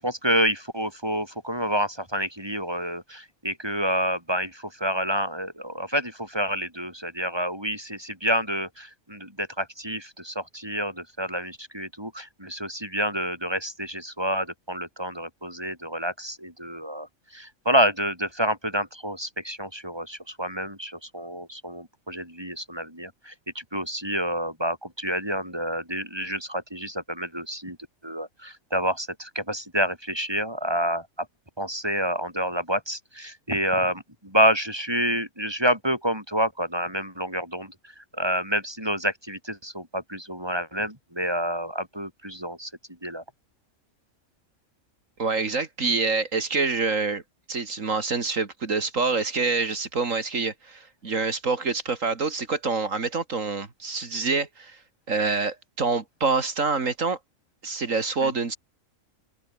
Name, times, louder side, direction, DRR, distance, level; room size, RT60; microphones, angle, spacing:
voice 1, 0.0-27.8 28.0-31.3 31.6-42.7 43.0-43.2 58.2-58.3, equal, 15° right, 7.9 m, -28 dB
voice 2, 45.2-47.2 47.5-54.8 55.1-57.2 57.6-58.6, right 4 dB, 65° right, 2.5 m, -26 dB
omnidirectional pair, 1.5 m